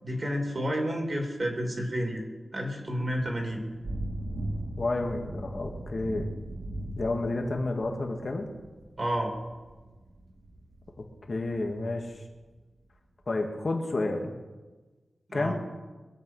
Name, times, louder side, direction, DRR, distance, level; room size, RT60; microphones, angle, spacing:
voice 1, 0.0-2.2 2.5-3.6 9.0-9.3 15.3-15.5, equal, 35° right, 1 dB, 2.8 m, -30 dB
Thunder / Rain, 3.1-12.4, right 1 dB, 80° right, 2.7 m, -39 dB
voice 2, 4.8-6.3 7.0-8.5 11.3-12.2 13.3-14.3 15.3-15.5, left 2 dB, 45° left, 3 dB, 2.0 m, -30 dB
22.5 x 8.3 x 5.6 m, 1.3 s
wide cardioid pair, 115°, 0 cm